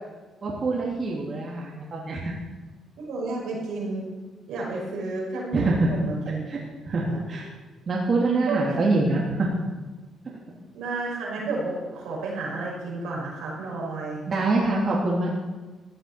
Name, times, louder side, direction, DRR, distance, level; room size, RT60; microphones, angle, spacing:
voice 1, 0.4-2.3 5.5-5.9 6.5-6.6 6.9-7.5 7.9-9.5 14.3-15.3, right 2 dB, 45° right, -3 dB, 2.9 m, -25 dB
voice 2, 3.0-4.2 4.5-6.4 7.1-7.2 8.5-8.6 10.7-14.2, right 3 dB, 85° right, -3 dB, 5.5 m, -31 dB
15.0 x 7.9 x 7.6 m, 1.2 s
cardioid pair, 90°, 0 cm